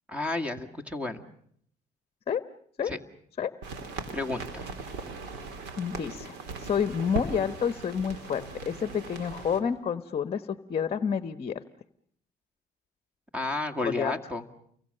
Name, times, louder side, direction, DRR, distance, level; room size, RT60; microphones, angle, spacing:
voice 1, 0.1-1.2 2.9-3.0 4.1-4.7 13.3-14.5, left 2 dB, 5° right, 9 dB, 2.1 m, -32 dB
sound 1, 3.6-9.6, right 4 dB, 90° right, 3.9 m, -39 dB
voice 2, 5.8-10.4 10.7-11.6 13.8-14.1, left 7 dB, 35° left, 12 dB, 1.1 m, -29 dB
29.5 x 24.0 x 6.7 m, 0.66 s
cardioid pair, 110°, 17 cm